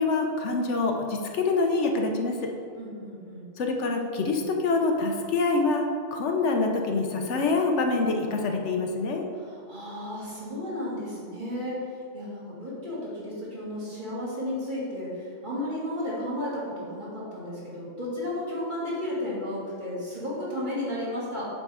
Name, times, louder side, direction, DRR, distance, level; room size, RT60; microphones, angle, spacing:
voice 1, 0.0-2.5 3.6-5.8 6.1-9.3, left 3 dB, 70° left, 3 dB, 1.0 m, -25 dB
voice 2, 2.7-3.5 9.4-21.5, left 1 dB, 40° right, -8 dB, 2.1 m, -33 dB
7.8 x 3.6 x 4.8 m, 2.3 s
omnidirectional pair, 1.3 m